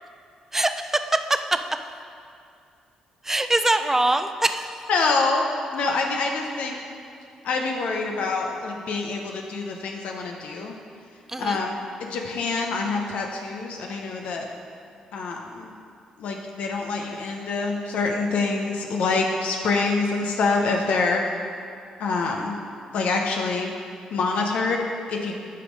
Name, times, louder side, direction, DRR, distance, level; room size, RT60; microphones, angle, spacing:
voice 1, 0.5-1.6 3.2-4.8 11.3-11.6, right 2 dB, 15° right, 9 dB, 0.5 m, -23 dB
voice 2, 4.9-6.8 7.4-10.7 11.4-14.5 15.1-15.7 16.2-21.3 22.0-22.5 22.9-23.7 24.1-25.3, left 3 dB, 70° left, 1 dB, 0.6 m, -26 dB
9.5 x 3.5 x 5.1 m, 2.4 s
supercardioid pair, 55°, 2 cm